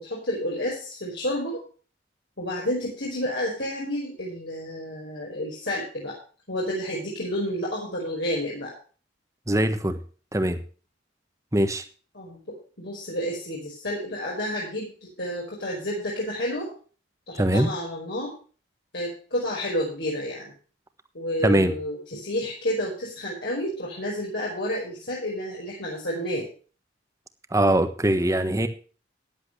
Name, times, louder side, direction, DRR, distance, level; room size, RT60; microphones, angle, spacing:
voice 1, 0.0-1.6 2.4-6.2 6.5-8.7 12.1-12.4 12.8-16.7 17.3-18.3 18.9-20.5 21.1-26.4, left 1 dB, 65° left, -4 dB, 5.2 m, -30 dB
voice 2, 9.5-10.0 10.3-10.6 11.5-11.8 17.3-17.7 21.4-21.7 27.5-28.7, right 1 dB, 15° right, 9 dB, 1.3 m, -22 dB
14.5 x 11.0 x 3.3 m, 0.39 s
head